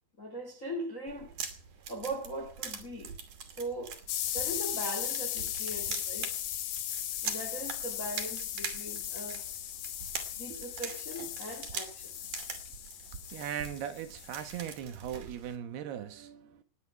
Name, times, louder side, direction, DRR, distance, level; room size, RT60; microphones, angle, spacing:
voice 1, 0.2-1.3 1.9-3.1 3.6-4.0 4.3-6.3 7.2-9.5 10.4-12.1, right 1 dB, 30° left, 1.7 m, -40 dB
sound 1, 1.1-15.6, right 6 dB, 50° right, 3.7 m, -43 dB
sound 2, 4.1-14.7, left 11 dB, 65° left, 2.8 m, -37 dB
voice 2, 13.3-16.6, right 9 dB, 70° right, 3.2 m, -39 dB
19.5 x 10.5 x 5.8 m
omnidirectional pair, 5.0 m